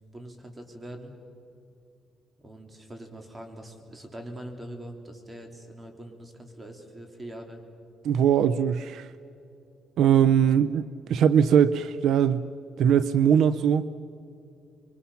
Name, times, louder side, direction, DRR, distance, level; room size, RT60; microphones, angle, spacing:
voice 1, 0.1-1.1 2.4-7.6, right 1 dB, 20° right, 4 dB, 3.7 m, -42 dB
voice 2, 8.0-9.1 10.0-12.5 12.8-13.8, right 8 dB, 75° right, 14 dB, 0.6 m, -21 dB
26.5 x 23.5 x 5.8 m, 2.6 s
cardioid pair, 90°, 0 cm